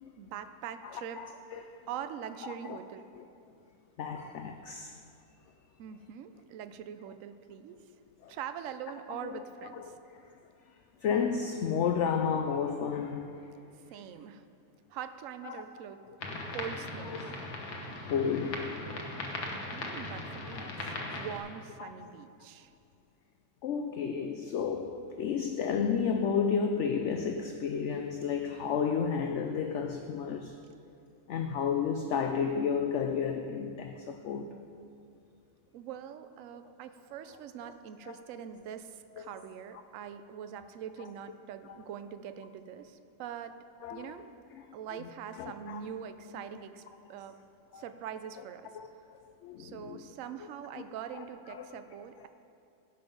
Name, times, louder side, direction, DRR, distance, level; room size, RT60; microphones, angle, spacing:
voice 1, 0.2-1.2 1.9-3.0 5.8-7.8 8.3-9.9 13.9-14.5 14.9-16.0 16.5-17.1 19.5-22.7 35.7-43.6 43.9-44.3 44.7-46.8 47.1-47.4 47.7-48.7 49.6-52.3, right 8 dB, 65° right, 0.9 m, -43 dB
voice 2, 0.8-1.8 2.6-2.8 4.0-4.9 8.2-8.4 9.2-9.4 9.7-9.9 11.0-13.3 15.4-15.6 16.1-16.2 17.1-17.3 18.1-18.7 20.5-20.6 21.8-22.1 23.6-30.6 31.3-34.6 37.6-37.7 38.1-38.2 43.8-44.1 44.5-44.7 45.0-45.1 45.3-45.8 46.3-46.4 47.7-47.8 48.7-48.9 49.4-50.1 50.7-50.8 51.1-51.8, left 6 dB, 65° left, 0.7 m, -32 dB
sound 1, 16.2-21.4, left 2 dB, 85° left, 1.8 m, -39 dB
16.5 x 5.7 x 5.3 m
omnidirectional pair, 1.7 m